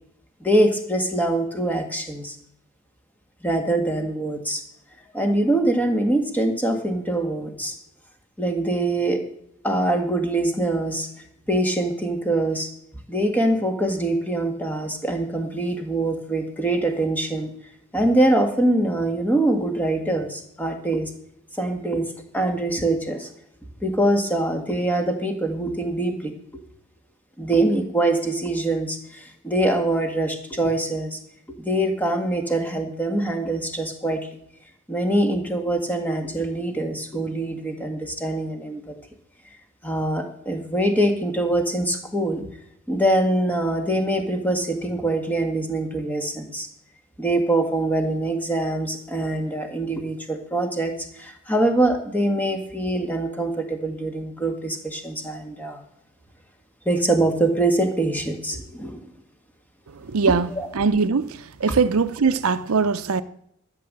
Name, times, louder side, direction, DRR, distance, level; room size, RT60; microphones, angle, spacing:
voice 1, 0.4-2.3 3.4-4.6 5.1-7.7 8.4-9.2 9.6-11.1 11.5-12.7 13.1-17.5 17.9-21.1 21.6-23.3 23.8-26.6 27.4-31.2 31.5-34.3 34.9-38.9 39.8-42.4 42.9-46.7 47.2-55.8 56.8-59.0 60.3-60.7, right 1 dB, 10° left, 1.7 m, -24 dB
voice 2, 60.1-60.5 60.8-61.3 61.6-63.2, right 5 dB, 90° right, 0.6 m, -21 dB
13.0 x 6.8 x 7.4 m
head